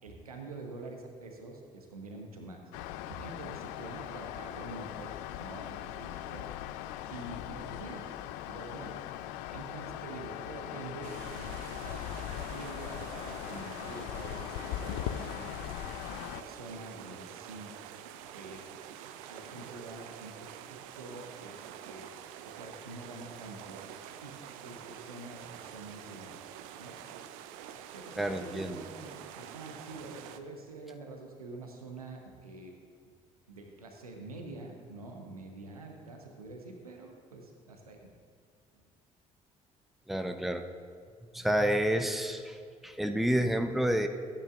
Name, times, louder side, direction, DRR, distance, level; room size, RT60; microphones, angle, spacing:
voice 1, 0.0-2.6 3.1-6.8 7.1-8.1 8.4-9.0 9.5-15.8 16.3-17.7 18.3-18.6 19.3-22.1 22.4-23.8 24.2-26.5 26.8-27.0 27.9-32.7 33.5-38.1 38.7-38.9, right 2 dB, 90° right, 2 dB, 1.0 m, -46 dB
sound 1, 2.7-16.4, left 12 dB, 65° left, 0.4 m, -40 dB
sound 2, 11.0-30.4, right 9 dB, 70° right, 0.5 m, -47 dB
voice 2, 28.2-28.8 40.1-40.7 41.3-44.1, equal, ahead, 7 dB, 0.8 m, -29 dB
14.5 x 10.0 x 2.5 m, 2.2 s
figure-of-eight pair, 50°, 18 cm